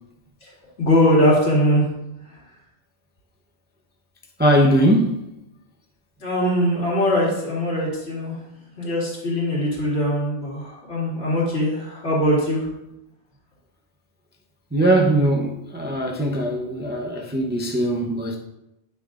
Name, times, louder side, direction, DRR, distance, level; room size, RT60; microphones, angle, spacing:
voice 1, 0.8-1.8 6.2-8.4 8.8-12.7, equal, 70° left, -6 dB, 2.8 m, -21 dB
voice 2, 4.4-5.2 14.7-18.4, right 1 dB, 10° right, -1 dB, 0.6 m, -20 dB
9.9 x 5.8 x 2.5 m, 0.87 s
omnidirectional pair, 1.2 m